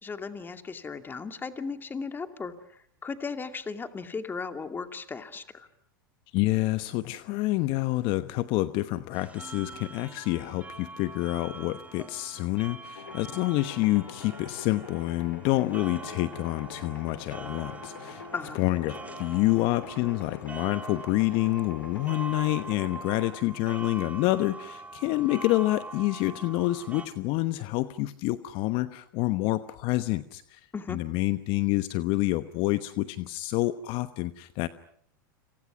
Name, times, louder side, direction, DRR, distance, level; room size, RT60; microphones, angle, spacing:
voice 1, 0.0-5.7 18.3-18.6 30.7-31.0, left 5 dB, 20° left, 8 dB, 2.5 m, -36 dB
voice 2, 6.3-18.2 18.5-30.6 30.9-34.7, left 18 dB, 50° left, 12 dB, 1.1 m, -28 dB
sound 1, 9.1-27.1, right 3 dB, 15° right, 3.0 m, -43 dB
sound 2, 13.0-23.4, left 6 dB, 90° left, 2.7 m, -45 dB
29.5 x 27.5 x 6.1 m, 0.63 s
hypercardioid pair, 100°, 11 cm